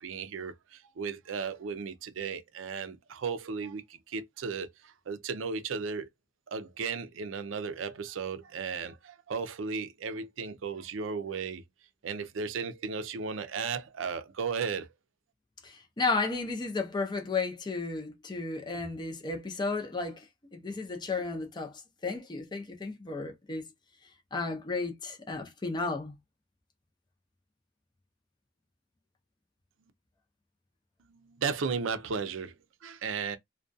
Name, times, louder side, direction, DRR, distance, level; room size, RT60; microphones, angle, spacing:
voice 1, 0.0-6.1 6.5-11.6 12.0-14.9 31.0-33.4, right 5 dB, 80° right, 0.5 m, -35 dB
voice 2, 15.6-20.2 20.5-23.6 24.3-26.1, left 3 dB, 25° left, 0.5 m, -33 dB
2.3 x 2.2 x 2.5 m
head